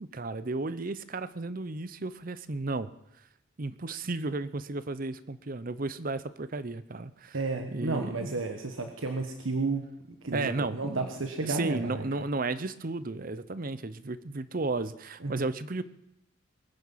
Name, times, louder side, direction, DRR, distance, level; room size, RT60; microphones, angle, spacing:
voice 1, 0.0-2.9 3.6-7.4 7.7-8.3 10.3-11.1 11.4-15.8, right 3 dB, 45° right, 15 dB, 0.7 m, -34 dB
voice 2, 7.3-9.8 10.2-12.1 15.2-15.4, right 3 dB, 80° right, 5 dB, 1.3 m, -32 dB
22.0 x 9.7 x 5.7 m, 0.88 s
head